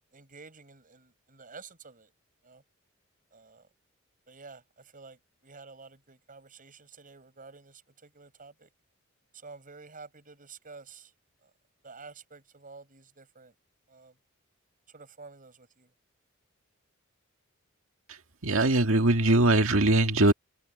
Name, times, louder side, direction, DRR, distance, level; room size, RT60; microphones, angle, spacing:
voice 1, 0.1-2.1 2.4-2.6 3.3-3.7 4.3-8.7 9.3-11.1 11.4-11.5 11.8-13.5 13.9-14.2 14.9-15.9, right 4 dB, 40° right, 6.0 m, -50 dB
voice 2, 18.4-20.3, right 2 dB, 70° right, 1.9 m, -21 dB
open air
head